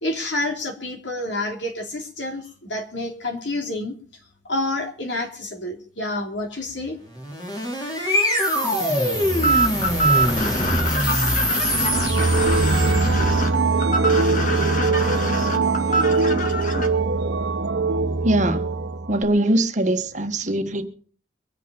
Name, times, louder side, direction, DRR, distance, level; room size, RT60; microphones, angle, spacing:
voice 1, 0.0-3.9 4.4-7.0, left 2 dB, 75° left, 3.1 m, -28 dB
sound 1, 7.1-13.4, equal, 25° left, 3.9 m, -23 dB
sound 2, 9.4-16.9, right 1 dB, 45° left, 2.0 m, -25 dB
sound 3, 11.7-19.2, right 3 dB, 85° right, 0.9 m, -22 dB
voice 2, 18.2-18.7 19.1-20.9, right 1 dB, 40° right, 1.2 m, -22 dB
23.5 x 8.4 x 5.2 m
head